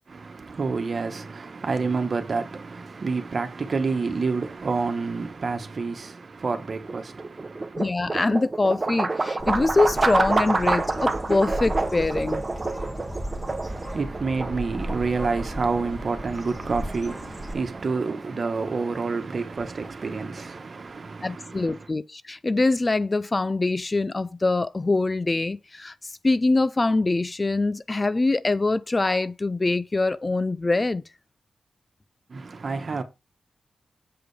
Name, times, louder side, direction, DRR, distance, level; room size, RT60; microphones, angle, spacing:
voice 1, 0.1-7.8 13.6-21.8 32.3-33.0, right 4 dB, 45° right, 1.3 m, -29 dB
sound 1, 6.5-20.6, right 3 dB, 30° right, 1.0 m, -29 dB
voice 2, 7.8-12.5 21.2-31.0, left 2 dB, 25° left, 0.4 m, -24 dB
Bird, 9.4-17.5, equal, 5° left, 2.6 m, -35 dB
7.7 x 5.1 x 4.9 m
wide cardioid pair, 130°, 0 cm